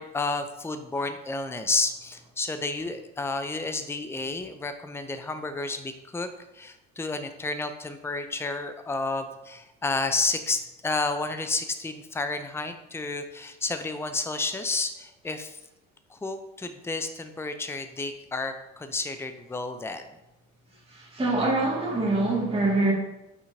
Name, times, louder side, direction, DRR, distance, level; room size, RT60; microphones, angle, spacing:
voice 1, 0.0-6.3 6.5-15.6 16.1-20.0, left 3 dB, 5° left, 9 dB, 0.6 m, -31 dB
voice 2, 21.1-22.9, right 2 dB, 15° right, -4 dB, 2.2 m, -24 dB
9.3 x 5.8 x 2.8 m, 0.92 s
figure-of-eight pair, 55°, 40 cm